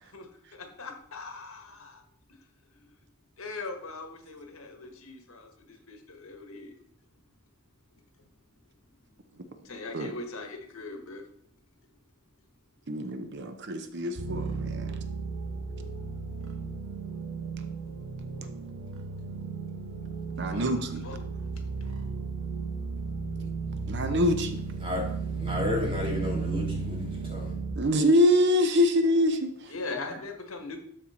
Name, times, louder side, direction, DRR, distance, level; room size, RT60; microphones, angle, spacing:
voice 1, 0.5-2.0 3.4-6.7 9.6-11.2 20.4-21.2 29.7-30.8, left 3 dB, 80° left, 4 dB, 1.5 m, -40 dB
voice 2, 12.9-15.0 20.4-21.1 23.9-24.6 27.8-29.6, left 1 dB, 55° right, 8 dB, 0.7 m, -25 dB
sound 1, 14.2-27.7, right 4 dB, 75° right, 1.7 m, -34 dB
voice 3, 25.4-27.6, left 2 dB, 25° right, -1 dB, 2.2 m, -32 dB
12.5 x 4.4 x 4.2 m, 0.70 s
head